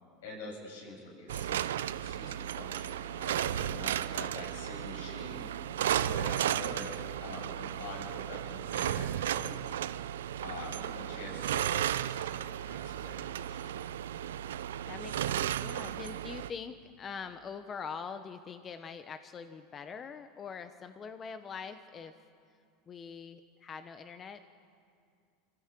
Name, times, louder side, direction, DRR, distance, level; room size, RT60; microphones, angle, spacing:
voice 1, 0.2-9.6 10.4-13.7, left 3 dB, 85° left, 0 dB, 7.3 m, -46 dB
sound 1, 1.3-16.5, right 11 dB, 90° right, 0.5 m, -34 dB
voice 2, 10.7-11.1 14.9-22.1 22.9-24.4, left 6 dB, 30° left, 9 dB, 1.0 m, -43 dB
25.5 x 16.0 x 7.7 m, 2.3 s
supercardioid pair, 110°, 0 cm